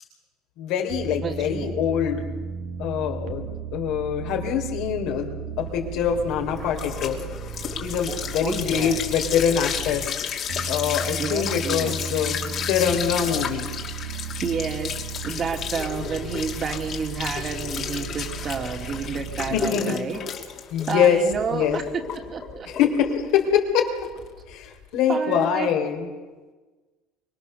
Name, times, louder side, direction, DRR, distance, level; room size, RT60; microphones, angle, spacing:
voice 1, 0.6-2.3 2.8-7.2 7.8-10.1 10.7-12.4 12.7-13.7 16.0-16.1 19.5-19.9 20.7-21.2 21.5-21.8 22.7-23.9 24.5-26.1, left 8 dB, 70° left, 3 dB, 3.4 m, -24 dB
sound 1, 0.9-10.1 10.5-19.7, right 6 dB, 75° right, 2.0 m, -35 dB
voice 2, 1.2-1.7 8.1-9.0 11.2-12.0 14.4-14.9 15.2-20.2 20.9-22.7 25.1-25.7, right 5 dB, 35° right, 3 dB, 2.5 m, -30 dB
sound 2, 5.8-24.8, left 8 dB, 45° left, 2.7 m, -32 dB
24.5 x 21.5 x 6.7 m, 1.3 s
cardioid pair, 120°, 0 cm